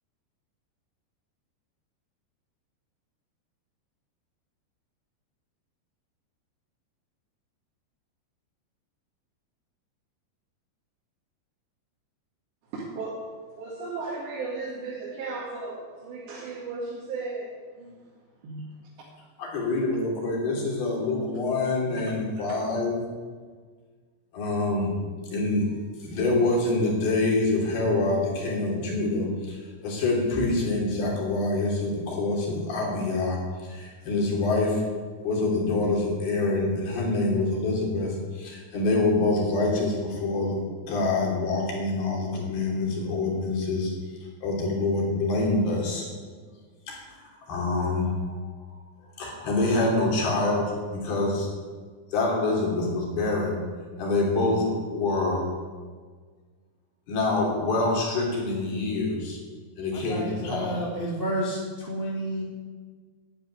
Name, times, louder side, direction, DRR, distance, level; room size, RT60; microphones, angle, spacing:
voice 1, 12.7-18.0 18.4-18.7 21.8-22.0, right 3 dB, 70° right, -5 dB, 4.2 m, -35 dB
voice 2, 19.4-23.0 24.3-25.0 25.3-25.7 26.0-33.4 33.7-34.8 35.2-43.9 44.4-46.1 46.9-47.0 47.5-48.4 49.2-51.5 52.1-53.6 54.0-55.4 57.1-59.4 59.8-60.7, left 2 dB, 60° left, -2 dB, 4.9 m, -26 dB
voice 3, 59.9-62.4, equal, 15° right, -4 dB, 2.1 m, -30 dB
12.0 x 9.0 x 9.7 m, 1.5 s
omnidirectional pair, 5.2 m